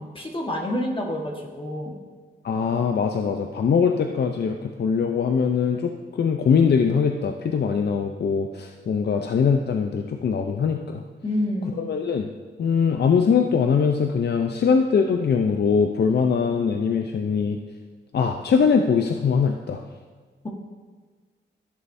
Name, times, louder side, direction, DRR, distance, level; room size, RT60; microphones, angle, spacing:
voice 1, 0.0-2.0 11.2-11.8, left 1 dB, 25° left, 0 dB, 1.5 m, -28 dB
voice 2, 2.4-5.9 6.2-11.0 11.8-12.3 12.6-17.6 18.1-19.8, left 6 dB, 60° left, 5 dB, 0.6 m, -22 dB
15.0 x 6.8 x 2.7 m, 1.5 s
cardioid pair, 60°, 20 cm